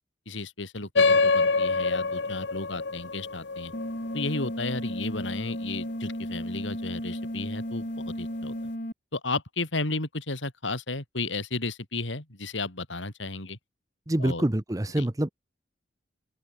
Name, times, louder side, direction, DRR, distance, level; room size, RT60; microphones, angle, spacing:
voice 1, 0.3-3.7 4.1-8.5 9.1-13.6 14.2-14.4 15.0-15.1, left 3 dB, 90° left, 4.0 m, -33 dB
sound 1, 0.9-5.9, left 4 dB, 70° left, 1.0 m, -26 dB
sound 2, 3.7-8.9, equal, 45° left, 4.4 m, -34 dB
voice 2, 14.1-15.3, right 1 dB, 20° right, 0.7 m, -26 dB
open air
head